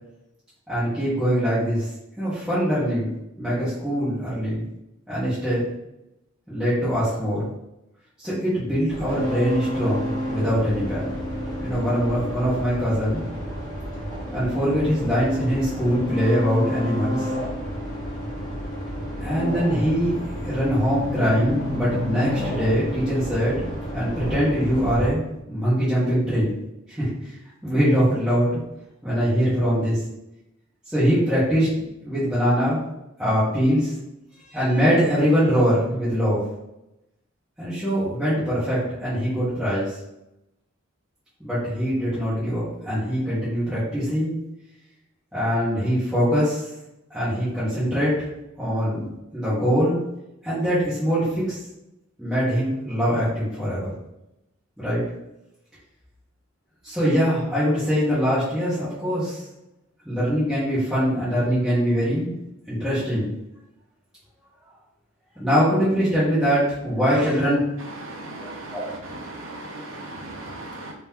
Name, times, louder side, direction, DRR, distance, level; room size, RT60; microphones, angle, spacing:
voice 1, 0.7-1.9 2.2-4.7 5.1-5.7 6.5-7.5 8.2-11.1 11.6-13.2 14.3-17.3 19.2-20.2 20.4-23.7 23.9-25.2 25.5-26.5 26.9-27.3 27.6-28.5 29.0-30.0 30.9-31.7 32.0-32.8 33.2-33.9 34.5-36.4 37.6-40.0 41.4-44.3 45.3-46.7 47.1-48.2 48.6-50.0 50.4-51.6 52.2-53.9 54.8-55.0 56.8-59.4 60.0-62.3 62.7-63.3 65.4-67.6 68.7-68.8, equal, 5° right, -13 dB, 1.3 m, -23 dB
sound 1, 8.9-25.1, equal, 20° left, 1.5 m, -30 dB
voice 2, 68.0-68.8 69.1-70.9, right 2 dB, 75° right, 0 dB, 0.9 m, -37 dB
3.1 x 2.9 x 3.5 m, 0.89 s
head